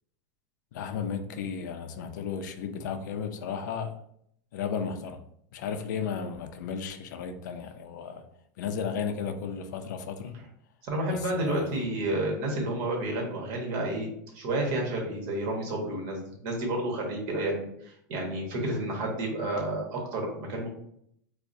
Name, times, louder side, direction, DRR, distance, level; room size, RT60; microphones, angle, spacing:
voice 1, 0.7-3.9 4.5-5.2 5.5-8.2 8.6-10.4 11.1-11.7, left 6 dB, 80° left, 0.5 m, -34 dB
voice 2, 10.8-14.1 14.3-20.7, right 1 dB, 45° right, 1.2 m, -30 dB
4.6 x 2.1 x 2.6 m
supercardioid pair, 150°, 10 cm